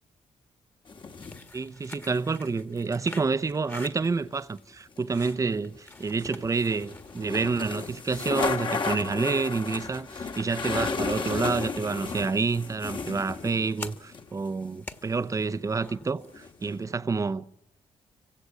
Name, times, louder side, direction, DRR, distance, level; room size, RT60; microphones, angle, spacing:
sound 1, 0.9-1.4 4.0-4.1 5.0-14.5 16.2-16.8, left 4 dB, 45° left, 2.0 m, -33 dB
sound 2, 1.1-16.7, left 2 dB, 20° left, 1.6 m, -49 dB
voice 1, 1.5-17.5, right 4 dB, 30° right, 0.8 m, -28 dB
25.0 x 16.5 x 8.5 m
cardioid pair, 80°, 12 cm